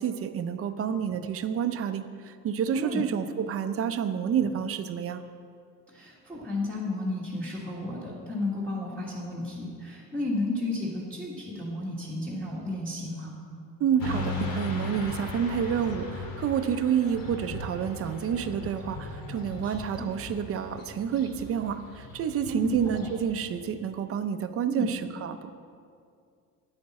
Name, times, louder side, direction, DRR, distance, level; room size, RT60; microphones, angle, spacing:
voice 1, 0.0-5.2 13.8-25.5, right 8 dB, 40° right, 9 dB, 0.5 m, -29 dB
voice 2, 5.9-13.3 19.6-20.0 22.5-23.1 24.6-24.9, left 2 dB, 5° left, -8 dB, 1.5 m, -33 dB
Motorcycle / Traffic noise roadway noise, 14.0-23.4, left 2 dB, 70° left, 2.1 m, -37 dB
13.5 x 9.7 x 4.2 m, 2.3 s
cardioid pair, 165°, 35 cm